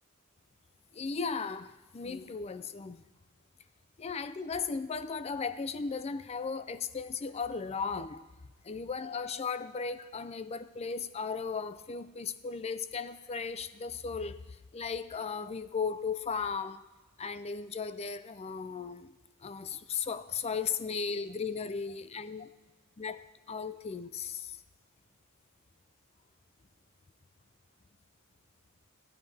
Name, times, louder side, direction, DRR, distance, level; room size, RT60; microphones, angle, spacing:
voice 1, 0.9-3.0 4.0-8.2 8.6-16.9 17.2-19.1 19.4-22.6 23.0-24.6, left 5 dB, 30° left, 0.4 m, -36 dB
15.5 x 12.5 x 3.4 m
head